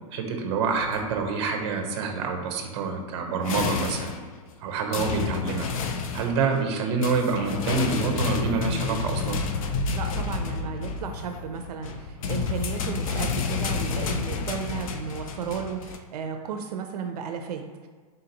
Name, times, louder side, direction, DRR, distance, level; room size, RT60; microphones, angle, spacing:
voice 1, 0.1-4.1 4.6-5.7 6.1-9.4, right 4 dB, 45° right, 4 dB, 0.7 m, -27 dB
sound 1, 0.8-1.8 3.4-4.5 4.9-6.6 7.0-16.0, left 5 dB, 60° left, 0.5 m, -30 dB
voice 2, 9.9-17.9, right 6 dB, 80° right, 5 dB, 0.5 m, -34 dB
3.9 x 2.8 x 3.9 m, 1.5 s
supercardioid pair, 165°, 20 cm